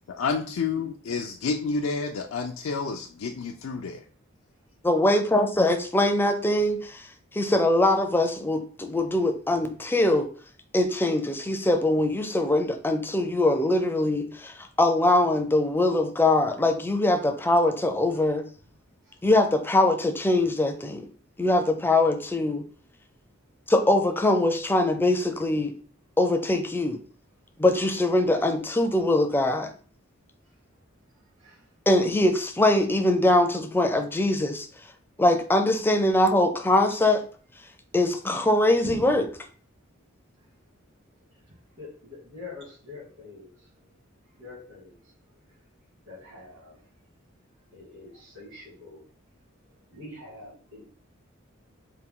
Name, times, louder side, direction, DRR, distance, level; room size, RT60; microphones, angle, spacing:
voice 1, 0.2-4.0, left 4 dB, 85° left, 2 dB, 0.4 m, -29 dB
voice 2, 4.8-6.8 7.3-10.3 10.7-18.4 19.2-21.1 21.4-22.6 23.7-25.7 26.2-27.0 27.6-29.7 31.9-34.7 35.2-37.2 37.9-39.3, left 1 dB, 10° left, 5 dB, 0.4 m, -22 dB
voice 3, 41.8-43.9 44.3-45.0 46.1-46.8 47.7-49.0 49.7-50.8, left 2 dB, 65° right, -6 dB, 2.0 m, -44 dB
4.3 x 2.2 x 3.7 m, 0.42 s
head